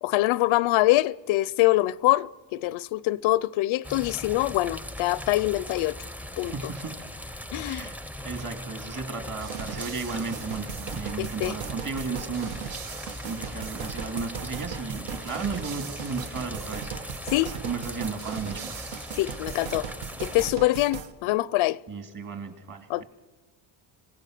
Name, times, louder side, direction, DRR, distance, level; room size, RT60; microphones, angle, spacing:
voice 1, 0.0-5.9 6.4-6.5 7.5-7.9 11.2-11.6 17.3-17.5 19.2-19.9 20.2-21.8 22.9-23.0, left 18 dB, 80° left, 0.6 m, -24 dB
sound 1, 3.8-20.5, left 1 dB, 5° right, 0.5 m, -39 dB
voice 2, 6.4-7.0 7.6-8.0 8.2-17.2 17.6-18.9 21.9-23.0, right 4 dB, 40° right, 2.6 m, -35 dB
sound 2, 9.4-21.1, right 7 dB, 80° right, 1.4 m, -38 dB
26.0 x 16.5 x 6.6 m
cardioid pair, 125°, 47 cm